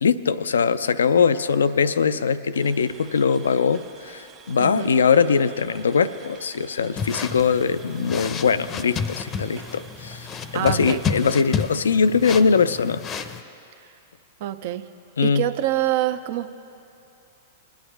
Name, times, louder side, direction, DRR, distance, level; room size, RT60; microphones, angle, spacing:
voice 1, 0.0-10.3 10.5-13.0 15.2-15.4, left 6 dB, 90° left, 14 dB, 0.4 m, -21 dB
sound 1, 2.5-11.3, right 6 dB, 40° right, 1.4 m, -48 dB
sound 2, 7.0-13.4, left 6 dB, 30° left, 0.6 m, -31 dB
voice 2, 10.5-11.0 14.4-14.8 15.2-16.6, right 13 dB, 60° right, 10 dB, 0.6 m, -25 dB
21.0 x 10.0 x 3.3 m, 2.6 s
hypercardioid pair, 115°, 0 cm